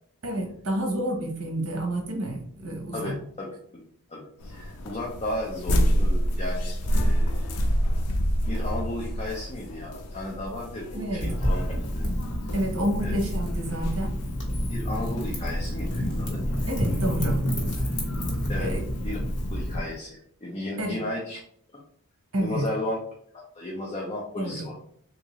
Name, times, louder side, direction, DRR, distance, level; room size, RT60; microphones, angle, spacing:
voice 1, 0.2-3.2 10.9-11.3 12.5-14.1 16.7-17.4 18.6-18.8 20.8-21.0 22.3-22.7 24.4-24.7, right 1 dB, 65° right, 1 dB, 1.0 m, -29 dB
voice 2, 2.9-3.5 3.7-3.8 4.1-7.7 8.5-11.6 11.9-12.0 13.0-13.1 14.7-16.4 18.5-18.7 19.0-19.2 19.5-21.4 22.4-23.0 23.6-24.7, left 1 dB, 30° left, -3 dB, 0.6 m, -34 dB
sound 1, 4.4-19.7, equal, 85° left, 0.5 m, -30 dB
Wind / Fire, 11.2-19.8, equal, 55° left, 1.5 m, -29 dB
3.6 x 2.6 x 3.0 m, 0.64 s
head